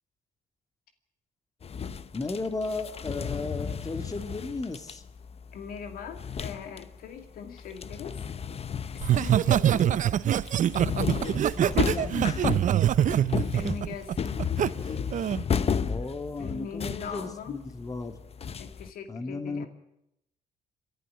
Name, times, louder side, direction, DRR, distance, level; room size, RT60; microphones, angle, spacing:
sound 1, 1.6-7.1 7.4-18.9, left 6 dB, 45° left, 1.0 m, -33 dB
voice 1, 2.1-5.0 9.8-10.0 11.1-12.5 15.9-18.2 19.1-19.7, left 3 dB, 25° left, 8 dB, 2.0 m, -35 dB
voice 2, 5.5-8.2 8.9-9.9 13.5-14.5 16.4-17.6 18.6-19.7, left 7 dB, 75° left, 7 dB, 2.4 m, -40 dB
Laughter, 9.0-14.7 15.1-15.4, right 10 dB, 60° right, 0.7 m, -24 dB
27.0 x 11.5 x 9.9 m, 0.81 s
cardioid pair, 75°, 15 cm